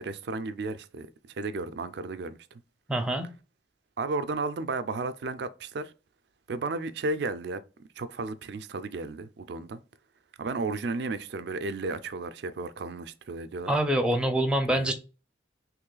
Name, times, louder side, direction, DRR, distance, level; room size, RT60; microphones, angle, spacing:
voice 1, 0.0-2.4 4.0-5.9 6.5-7.6 8.0-9.8 10.4-13.7 14.7-14.9, right 3 dB, 65° right, 0.4 m, -33 dB
voice 2, 2.9-3.3 13.7-14.9, right 1 dB, 5° right, 0.5 m, -25 dB
3.1 x 3.1 x 3.8 m
head